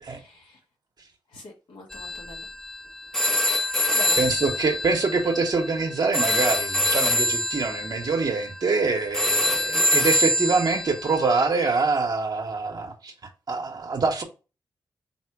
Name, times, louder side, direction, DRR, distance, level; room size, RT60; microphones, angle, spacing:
voice 1, 0.1-0.6 1.3-2.5 3.9-4.3, left 2 dB, 85° left, 1.8 m, -43 dB
sound 1, 1.9-11.5, left 1 dB, 5° left, 0.5 m, -25 dB
voice 2, 4.2-13.1 13.5-14.2, right 4 dB, 55° right, 0.8 m, -25 dB
4.2 x 2.1 x 4.5 m
cardioid pair, 60°, 8 cm